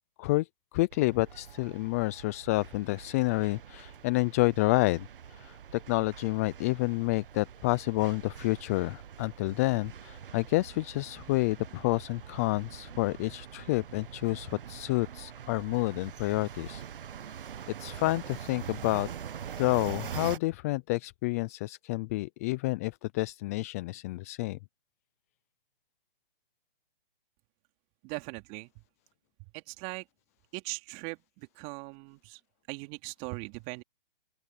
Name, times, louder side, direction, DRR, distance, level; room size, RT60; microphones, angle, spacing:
voice 1, 0.7-16.8 17.8-19.1 19.6-24.6, left 21 dB, 15° left, 0.4 m, -29 dB
sound 1, 0.9-20.4, right 8 dB, 65° right, 1.4 m, -44 dB
voice 2, 28.0-28.7 29.5-30.0 30.5-32.4 32.7-33.8, right 28 dB, 30° right, 3.0 m, -40 dB
open air
hypercardioid pair, 140°, 29 cm